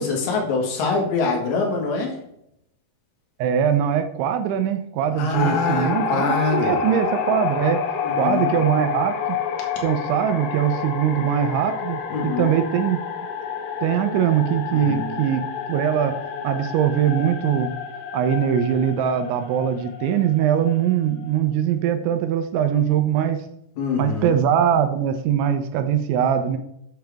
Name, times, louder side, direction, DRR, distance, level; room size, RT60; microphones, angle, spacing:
voice 1, 0.0-2.1 5.2-6.8 8.0-8.5 12.1-12.6 14.7-15.2 23.8-24.3, left 4 dB, 50° left, 0 dB, 2.5 m, -25 dB
voice 2, 3.4-7.8 8.2-9.1 9.8-13.0 13.8-15.4 15.7-16.2 16.4-17.7 18.1-23.4 24.0-26.6, right 9 dB, 80° right, 8 dB, 2.9 m, -21 dB
sound 1, 5.3-21.3, left 6 dB, 90° left, 2.0 m, -29 dB
7.7 x 7.7 x 3.5 m, 0.75 s
omnidirectional pair, 5.5 m